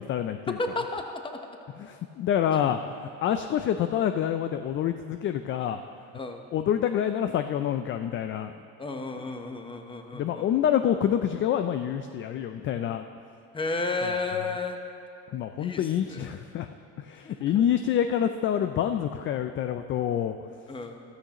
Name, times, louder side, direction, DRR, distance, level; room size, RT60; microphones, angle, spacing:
voice 1, 0.0-0.6 1.8-5.8 6.5-8.5 9.2-9.3 10.1-13.1 15.3-16.7 17.0-20.4, left 9 dB, 35° left, 8 dB, 0.4 m, -27 dB
voice 2, 0.6-1.4 2.4-2.7 6.1-6.4 8.8-10.5 13.5-14.8 15.6-16.4 17.2-17.3 20.7-21.0, left 3 dB, 15° left, 5 dB, 0.9 m, -33 dB
14.0 x 13.0 x 3.0 m, 2.6 s
cardioid pair, 115°, 34 cm